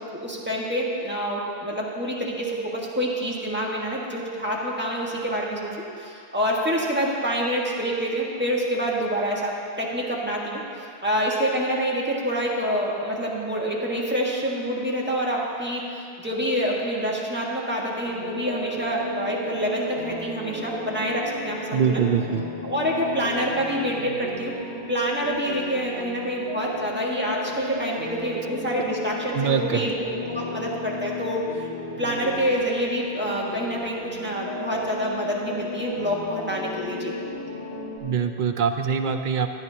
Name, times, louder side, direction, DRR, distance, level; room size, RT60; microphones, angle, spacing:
voice 1, 0.1-5.7 6.0-10.6 11.0-22.0 22.6-24.5 24.9-30.0 30.3-31.7 32.0-37.1, equal, 10° right, -4 dB, 1.5 m, -27 dB
sound 1, 18.0-38.0, left 2 dB, 65° left, 2.0 m, -35 dB
voice 2, 21.7-22.4 29.3-29.9 38.0-39.5, right 7 dB, 55° right, 7 dB, 0.7 m, -23 dB
16.5 x 11.0 x 2.8 m, 2.5 s
omnidirectional pair, 1.1 m